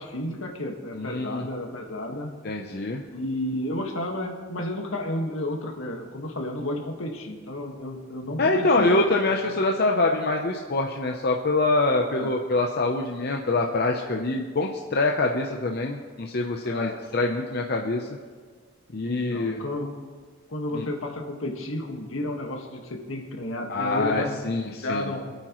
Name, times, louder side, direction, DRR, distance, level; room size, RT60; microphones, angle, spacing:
voice 1, 0.0-2.3 3.1-9.0 12.1-12.3 16.6-17.0 19.0-19.9 20.5-24.5 24.8-25.3, left 1 dB, 75° left, 2 dB, 1.7 m, -32 dB
voice 2, 0.9-1.5 2.4-3.0 8.4-18.1 18.9-19.6 20.7-20.9 23.7-25.1, left 2 dB, 50° left, 1 dB, 0.8 m, -25 dB
25.0 x 9.0 x 3.1 m, 1.5 s
head